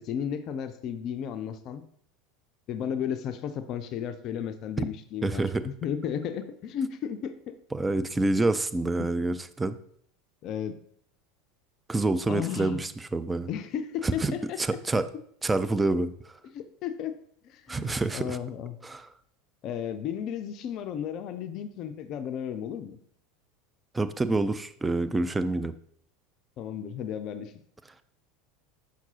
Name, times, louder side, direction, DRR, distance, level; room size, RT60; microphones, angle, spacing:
voice 1, 0.0-1.8 2.7-7.6 9.0-9.2 10.4-10.8 12.3-12.8 13.5-14.6 16.5-17.1 17.4-18.8 19.6-23.0 26.6-27.5, left 8 dB, 45° left, 10 dB, 0.4 m, -34 dB
voice 2, 5.2-5.6 7.7-9.8 11.9-13.5 14.0-15.1 15.4-16.1 17.7-18.4 18.8-19.1 23.9-25.7, right 2 dB, 15° right, 11 dB, 0.4 m, -27 dB
5.9 x 5.8 x 2.8 m, 0.63 s
figure-of-eight pair, 75°, 0 cm